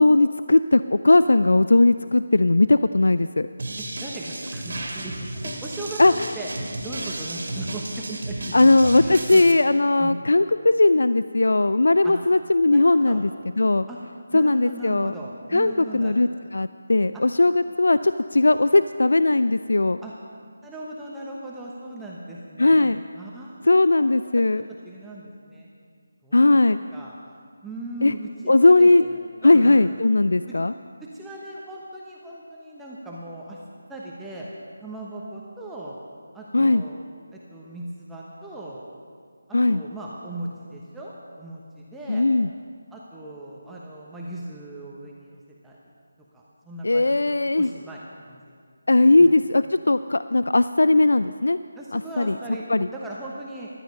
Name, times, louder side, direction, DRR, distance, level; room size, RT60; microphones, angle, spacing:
voice 1, 0.0-3.5 6.0-6.3 8.5-13.3 13.6-13.9 14.3-15.1 15.5-20.0 22.6-23.0 23.7-24.6 26.3-26.8 28.0-28.1 28.5-29.0 29.4-30.7 36.5-36.8 39.5-39.8 42.1-42.5 46.8-47.7 48.9-51.6 51.9-52.4 52.7-52.9, left 2 dB, 70° left, 13 dB, 0.3 m, -18 dB
sound 1, 3.6-9.5, right 1 dB, 55° right, 2.1 m, -33 dB
voice 2, 3.8-6.0 6.3-9.4 10.0-10.3 12.0-12.1 12.7-13.2 13.9-14.0 14.3-16.3 18.2-18.3 20.0-20.1 20.6-24.4 24.8-25.7 26.2-26.4 26.6-27.1 27.6-30.0 30.5-30.6 31.0-33.6 33.9-34.5 34.8-36.0 36.3-37.0 37.3-38.9 39.5-42.2 42.9-45.8 46.3-48.0 48.2-48.5 49.2-49.3 51.7-53.7, right 1 dB, 5° right, -5 dB, 1.1 m, -38 dB
15.5 x 12.0 x 5.3 m, 2.1 s
figure-of-eight pair, 160°, 0 cm